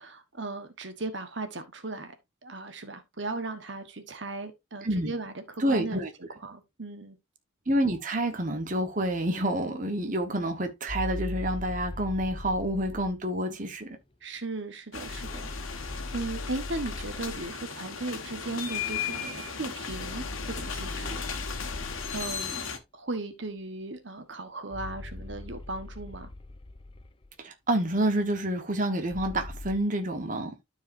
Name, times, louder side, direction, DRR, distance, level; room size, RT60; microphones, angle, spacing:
voice 1, 0.0-2.1 2.4-6.0 6.3-7.2 14.2-21.5 22.1-22.7 22.9-26.3, right 2 dB, 65° right, 1.2 m, -37 dB
voice 2, 5.6-6.1 7.7-14.0 27.4-30.5, right 1 dB, 40° right, 1.2 m, -28 dB
sound 1, 10.9-13.2 15.1-17.6 19.9-22.5 24.7-27.3 29.1-29.8, left 2 dB, 25° left, 0.5 m, -39 dB
sound 2, 14.9-22.8, left 6 dB, 85° left, 1.6 m, -36 dB
13.0 x 4.8 x 2.6 m
head